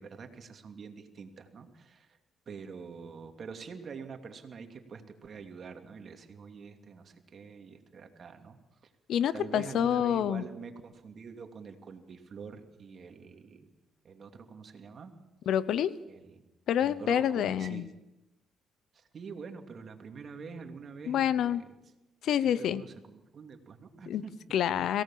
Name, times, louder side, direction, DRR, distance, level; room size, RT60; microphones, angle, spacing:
voice 1, 0.0-2.2 2.5-8.6 8.8-8.9 9.3-13.7 14.0-15.1 16.1-16.4 16.8-17.8 18.9-21.6 22.4-24.4, right 5 dB, 50° right, 5 dB, 2.7 m, -45 dB
voice 2, 9.1-10.4 15.5-16.0 16.7-17.9 21.1-21.6 22.2-22.8 24.1-24.2 24.5-25.0, left 10 dB, 75° left, 17 dB, 0.8 m, -27 dB
23.0 x 17.5 x 7.5 m, 0.98 s
cardioid pair, 90°, 0 cm